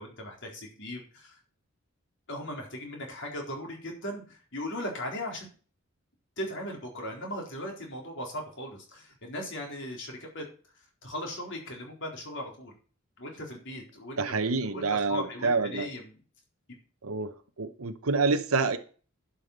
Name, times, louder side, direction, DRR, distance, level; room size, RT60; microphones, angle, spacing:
voice 1, 0.0-1.4 2.3-5.5 6.4-10.5 10.8-12.7 13.2-14.2 14.7-16.1, left 1 dB, 60° left, 4.0 m, -38 dB
voice 2, 14.2-15.9 17.0-18.8, right 4 dB, 90° right, 1.0 m, -27 dB
11.0 x 5.7 x 6.7 m
head